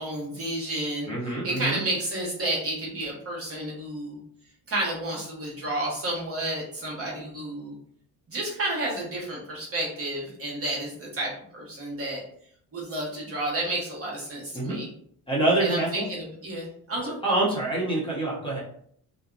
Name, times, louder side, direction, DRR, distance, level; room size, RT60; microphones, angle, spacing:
voice 1, 0.0-1.1 1.4-4.2 4.7-7.7 8.3-12.2 12.7-14.9 15.6-17.2, right 1 dB, 40° right, -4 dB, 1.2 m, -31 dB
voice 2, 1.1-1.8 14.5-14.8 15.3-16.1 17.0-18.6, right 2 dB, 15° left, -6 dB, 1.0 m, -26 dB
2.6 x 2.2 x 2.5 m, 0.62 s
cardioid pair, 100°, 37 cm